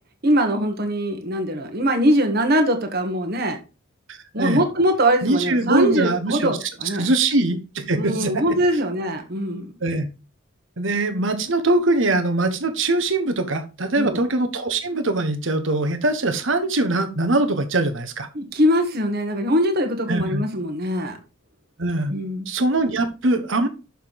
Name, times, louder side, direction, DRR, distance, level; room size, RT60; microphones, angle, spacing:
voice 1, 0.2-3.6 4.3-7.1 7.9-9.7 14.0-14.2 18.3-21.2 22.1-22.5, equal, 50° right, 1.5 m, -22 dB
voice 2, 4.1-4.6 5.2-6.6 6.9-8.4 9.8-10.1 10.8-18.3 20.1-20.4 21.8-22.1 22.5-23.7, right 2 dB, 65° right, 1.2 m, -22 dB
6.8 x 5.4 x 4.1 m
head